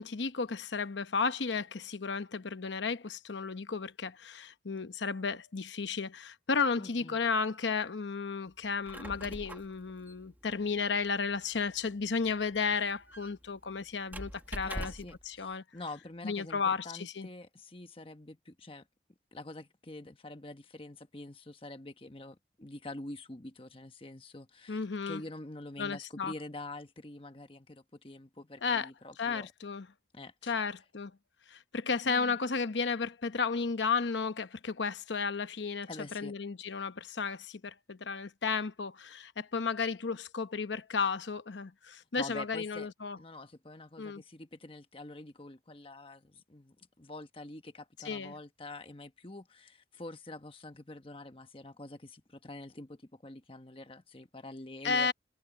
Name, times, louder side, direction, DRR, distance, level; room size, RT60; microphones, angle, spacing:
voice 1, 0.0-14.9 15.3-15.6 16.2-17.3 24.7-25.2 25.8-26.3 28.6-28.9 29.2-29.9 30.4-31.1 31.5-35.9 36.1-43.2 44.0-44.2 48.0-48.3 54.8-55.1, left 5 dB, 85° left, 0.9 m, -33 dB
voice 2, 6.8-7.2 14.6-18.9 19.3-29.5 30.1-30.6 32.0-32.4 35.9-36.3 42.2-42.9 43.2-55.1, left 2 dB, 30° left, 1.2 m, -46 dB
Squeak, 8.6-15.3, right 1 dB, 10° right, 1.3 m, -46 dB
head